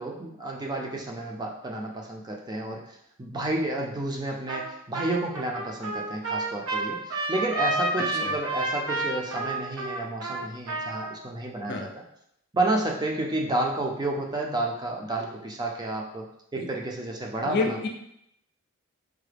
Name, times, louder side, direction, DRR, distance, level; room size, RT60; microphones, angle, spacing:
voice 1, 0.0-2.8 3.2-12.0 12.5-16.3 16.5-17.9, right 2 dB, 20° right, 0 dB, 0.4 m, -30 dB
Trumpet, 4.5-4.7 4.9-11.2, right 2 dB, 70° right, 0.7 m, -30 dB
voice 2, 8.0-8.3 11.7-11.9 16.6-16.7 17.4-17.9, left 4 dB, 50° left, 3 dB, 0.5 m, -29 dB
4.7 x 2.1 x 3.3 m, 0.75 s
head